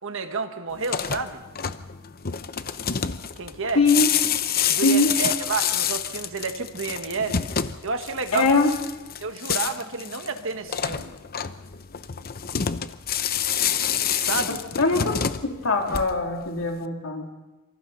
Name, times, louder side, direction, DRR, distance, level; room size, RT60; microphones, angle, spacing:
voice 1, 0.0-1.4 3.4-3.8 4.7-7.4 7.8-8.5 9.2-11.1 14.2-14.6, right 4 dB, 65° right, 7 dB, 1.6 m, -30 dB
sound 1, 0.7-16.4, left 8 dB, 45° left, 0.8 m, -28 dB
voice 2, 3.7-4.1 4.8-5.2 8.3-8.7 14.5-17.3, left 3 dB, 70° left, 2 dB, 3.0 m, -22 dB
27.0 x 25.0 x 4.1 m, 1.1 s
head